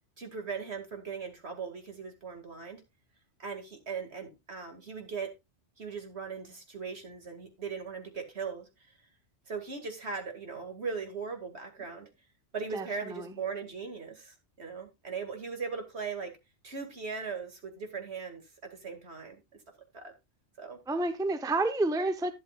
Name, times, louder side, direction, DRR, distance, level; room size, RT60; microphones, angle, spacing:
voice 1, 0.2-2.8 3.4-5.3 5.8-8.7 9.5-12.1 12.5-16.3 16.6-18.4 18.7-19.4 19.9-20.1 20.6-20.8, right 5 dB, 65° right, 2.4 m, -39 dB
voice 2, 12.7-13.3 20.9-22.3, right 2 dB, 5° right, 0.7 m, -30 dB
11.5 x 10.5 x 2.4 m
omnidirectional pair, 1.2 m